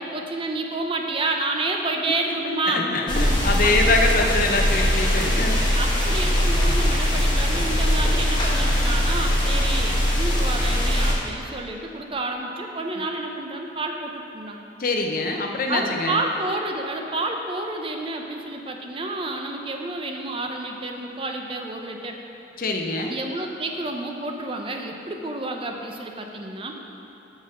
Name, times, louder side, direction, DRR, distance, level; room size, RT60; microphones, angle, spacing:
voice 1, 0.0-2.9 3.6-4.3 5.7-14.7 15.7-22.2 23.1-26.7, right 2 dB, 30° right, 3 dB, 0.6 m, -29 dB
voice 2, 2.5-5.6 14.8-16.2 22.6-23.2, left 2 dB, 50° left, 2 dB, 0.7 m, -24 dB
sound 1, 3.1-11.1, equal, 25° left, 1.2 m, -21 dB
6.4 x 5.3 x 6.4 m, 2.9 s
head